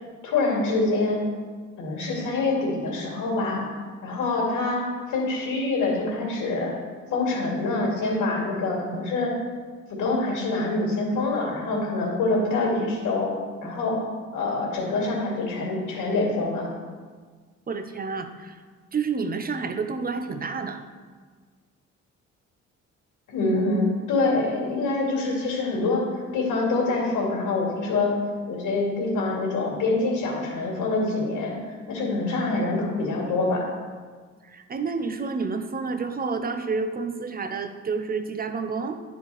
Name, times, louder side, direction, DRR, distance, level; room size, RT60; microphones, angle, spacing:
voice 1, 0.2-1.2 1.8-3.6 4.0-6.7 7.1-9.3 9.9-13.3 13.6-14.0 14.3-16.7 23.3-26.0 26.3-28.1 28.5-33.6, left 3 dB, 85° left, -3 dB, 2.4 m, -25 dB
voice 2, 17.7-18.6 18.9-20.8 34.4-39.0, right 4 dB, 30° right, 7 dB, 0.7 m, -29 dB
9.8 x 4.6 x 4.1 m, 1.5 s
cardioid pair, 90°, 30 cm